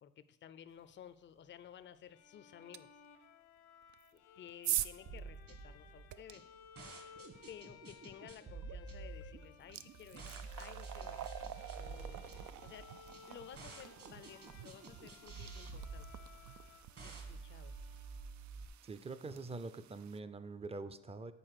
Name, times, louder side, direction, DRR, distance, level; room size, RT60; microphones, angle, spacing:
voice 1, 0.0-2.9 4.4-6.5 7.5-10.3 10.6-11.3 11.8-12.9 13.3-16.1 17.0-17.8, left 9 dB, 40° left, 12 dB, 0.5 m, -55 dB
Bowed string instrument, 2.1-18.6, left 8 dB, 80° left, 0.9 m, -60 dB
sound 1, 2.7-2.8 3.9-6.3 8.6-8.8 9.2-20.2, right 12 dB, 70° right, 0.5 m, -45 dB
sound 2, 5.1-18.7, right 4 dB, 50° right, 1.7 m, -50 dB
voice 2, 18.8-21.3, right 3 dB, 20° right, 12 dB, 0.5 m, -44 dB
7.8 x 4.2 x 6.4 m, 0.86 s
cardioid pair, 90°, 30 cm